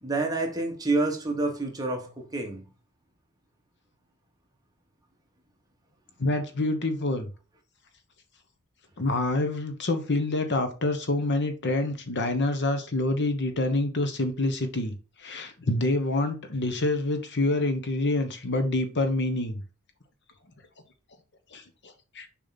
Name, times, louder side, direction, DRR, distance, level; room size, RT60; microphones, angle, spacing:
voice 1, 0.0-2.7, right 2 dB, 15° right, 1.6 m, -28 dB
voice 2, 6.2-7.3 9.0-19.6 21.5-22.3, left 2 dB, 50° left, 1.1 m, -27 dB
6.8 x 4.8 x 4.1 m
head